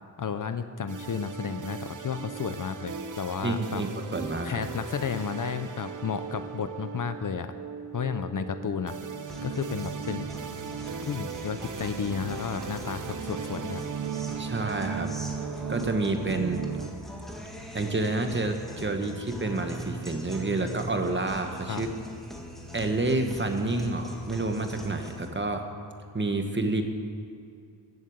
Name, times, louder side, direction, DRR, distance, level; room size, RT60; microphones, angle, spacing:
voice 1, 0.2-3.8 4.4-7.6 7.9-9.0 9.4-10.3 11.1-13.8 21.7-21.8, left 6 dB, 50° left, 10 dB, 0.6 m, -32 dB
sound 1, 0.9-16.9, right 7 dB, 45° right, 0.8 m, -37 dB
voice 2, 3.4-4.7 14.4-15.1 15.7-16.7 17.7-21.9 22.7-25.6 26.1-26.8, right 2 dB, 25° right, 5 dB, 1.1 m, -29 dB
Guitar, 9.3-25.3, equal, ahead, 1.8 m, -42 dB
14.0 x 8.1 x 7.9 m, 2.4 s
wide cardioid pair, 130°, 42 cm